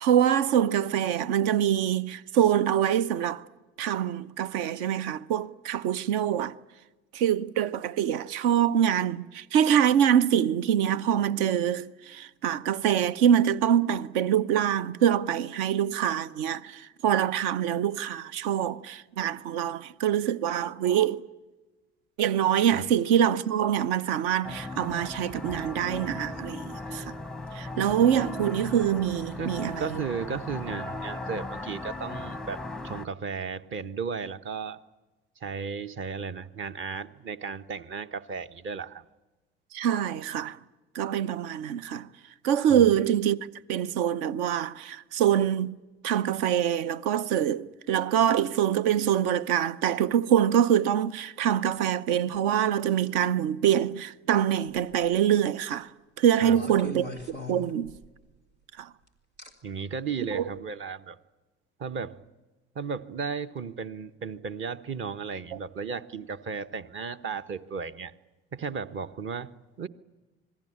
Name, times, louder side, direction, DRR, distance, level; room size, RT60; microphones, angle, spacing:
voice 1, 0.0-3.4 3.8-6.5 7.1-21.2 22.2-27.0 27.5-29.9 39.7-40.6 40.9-42.1 42.4-43.4 43.7-45.7 46.0-55.9 56.2-57.9 58.8-58.9 60.3-60.4, right 9 dB, 60° right, 0.8 m, -25 dB
sound 1, 24.4-33.1, left 2 dB, ahead, 0.7 m, -37 dB
voice 2, 29.4-34.8 35.4-39.0 42.7-42.9 56.4-56.6 59.6-61.2 61.8-62.2 62.7-68.1 68.5-69.5 69.8-69.9, right 5 dB, 40° right, 1.1 m, -35 dB
sound 2, 54.7-55.1 56.5-58.3 59.4-59.5 60.3-60.5, left 2 dB, 85° right, 2.5 m, -40 dB
27.0 x 20.5 x 8.7 m
figure-of-eight pair, 55°, 32 cm